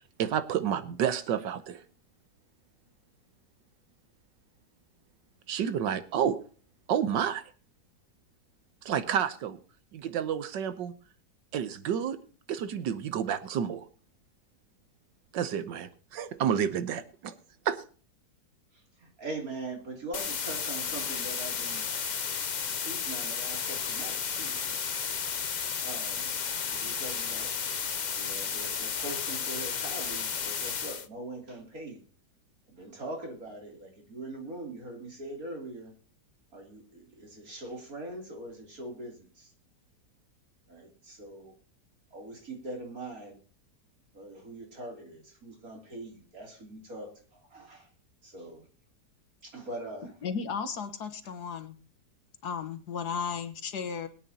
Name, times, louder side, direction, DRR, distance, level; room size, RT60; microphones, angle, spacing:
voice 1, 0.2-1.8 5.5-6.4 6.9-7.4 8.8-9.6 9.9-10.9 11.5-12.2 12.5-13.8 15.3-17.3 17.6-17.8, right 8 dB, 85° right, 12 dB, 1.6 m, -30 dB
voice 2, 18.7-21.8 22.7-24.8 25.8-26.3 26.7-27.5 28.2-32.0 32.7-36.0 36.5-39.5 40.7-41.6 42.1-43.4 44.1-47.9 48.2-48.7 49.4-50.2, right 2 dB, 55° right, 1 dB, 3.7 m, -42 dB
sound 1, 20.1-31.1, left 6 dB, 85° left, 0.4 m, -33 dB
voice 3, 50.0-51.8 52.4-54.1, left 6 dB, 65° left, 10 dB, 1.7 m, -35 dB
21.5 x 9.1 x 2.9 m, 0.40 s
omnidirectional pair, 1.9 m